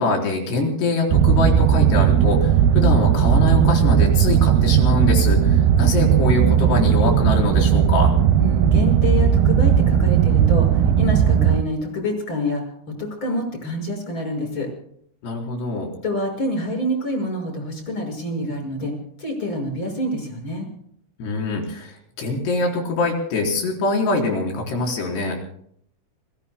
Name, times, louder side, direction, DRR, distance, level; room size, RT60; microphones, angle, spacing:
voice 1, 0.0-8.1 15.2-15.9 21.2-25.4, left 3 dB, 60° left, 0 dB, 6.0 m, -23 dB
sound 1, 1.1-11.6, right 9 dB, 80° right, 2.4 m, -17 dB
voice 2, 8.4-12.6 13.0-14.7 16.0-18.9 19.2-20.7, left 1 dB, 25° left, 3 dB, 6.1 m, -27 dB
30.0 x 21.0 x 2.2 m, 0.67 s
omnidirectional pair, 5.6 m